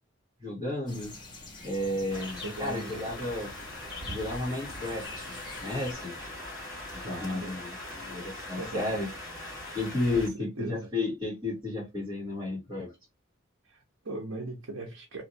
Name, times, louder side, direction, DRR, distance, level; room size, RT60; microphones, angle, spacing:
voice 1, 0.4-1.1 1.6-3.5 4.1-5.3 5.6-6.1 6.9-9.1 9.7-12.9, left 2 dB, 20° right, 2.0 m, -32 dB
sound 1, 0.9-5.9, left 3 dB, 20° left, 0.9 m, -45 dB
sound 2, 2.1-10.3, left 1 dB, 5° left, 2.0 m, -41 dB
voice 2, 2.4-3.4 7.0-7.5 8.6-9.0 9.4-9.5 10.1-10.9 13.7-15.2, right 2 dB, 85° right, 0.8 m, -40 dB
3.2 x 2.7 x 2.8 m
head